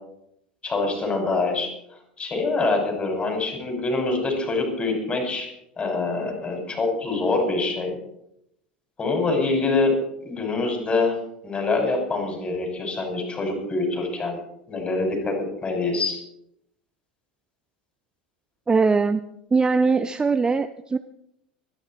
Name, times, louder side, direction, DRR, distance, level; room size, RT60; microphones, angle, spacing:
voice 1, 0.6-1.7 2.2-5.5 5.8-7.9 9.0-9.9 10.2-11.2 11.4-14.4 14.7-16.2, left 3 dB, 25° left, 3 dB, 6.6 m, -25 dB
voice 2, 18.7-19.2 19.5-21.0, right 4 dB, 15° right, 10 dB, 0.7 m, -21 dB
25.5 x 10.5 x 4.6 m, 0.77 s
figure-of-eight pair, 75°, 5 cm